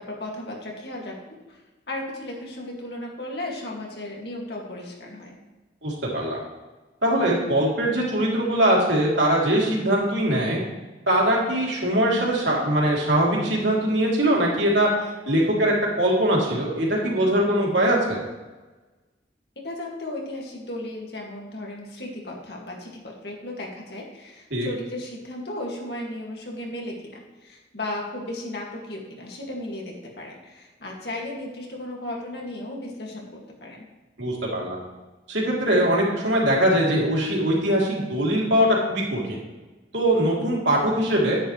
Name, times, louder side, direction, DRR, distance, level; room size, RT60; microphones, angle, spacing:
voice 1, 0.1-1.1 1.5-1.6 1.9-5.3 19.6-33.9, left 1 dB, 65° left, -1 dB, 2.3 m, -35 dB
voice 2, 5.8-6.4 7.0-10.6 11.1-14.9 15.3-18.2 24.5-24.7 34.2-34.8 35.3-39.4 39.9-41.4, right 1 dB, 80° right, -3 dB, 3.4 m, -22 dB
10.5 x 10.0 x 3.3 m, 1.2 s
head